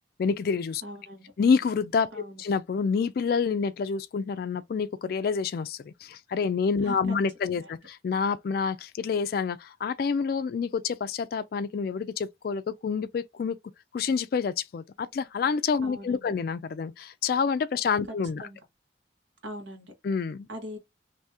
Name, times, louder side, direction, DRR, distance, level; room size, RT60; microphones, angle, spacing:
voice 1, 0.2-0.8 1.4-13.6 13.9-18.5 20.0-20.5, left 5 dB, 55° left, 0.3 m, -28 dB
voice 2, 0.8-1.3 2.1-2.4 6.8-7.2 7.6-7.7 15.8-16.3 18.4-18.6 19.4-19.9 20.5-20.8, equal, 80° right, 1.3 m, -41 dB
2.7 x 2.7 x 3.4 m
head